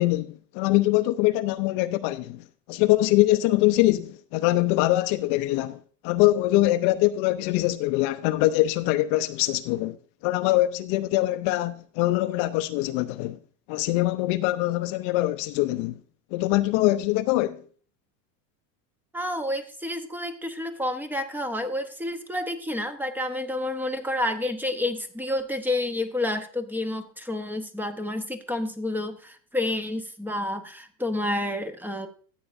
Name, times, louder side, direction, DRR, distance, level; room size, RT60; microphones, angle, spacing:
voice 1, 0.0-5.8 6.0-10.0 10.2-13.4 13.7-16.0 16.3-17.6, left 17 dB, 50° left, 0.6 m, -23 dB
voice 2, 19.1-32.1, left 1 dB, 5° right, 0.7 m, -29 dB
14.0 x 8.2 x 2.5 m
supercardioid pair, 120°, 50 cm